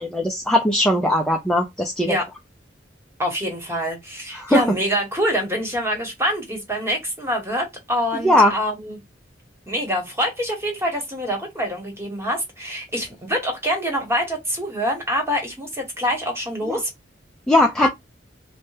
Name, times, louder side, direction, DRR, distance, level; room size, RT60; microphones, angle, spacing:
voice 1, 0.1-2.1 4.4-4.6 8.2-8.5 16.7-16.8 17.5-17.9, left 1 dB, 5° left, 0.4 m, -18 dB
voice 2, 3.2-9.0 9.7-16.9 17.8-17.9, equal, 15° right, 1.1 m, -25 dB
3.3 x 2.1 x 3.2 m
head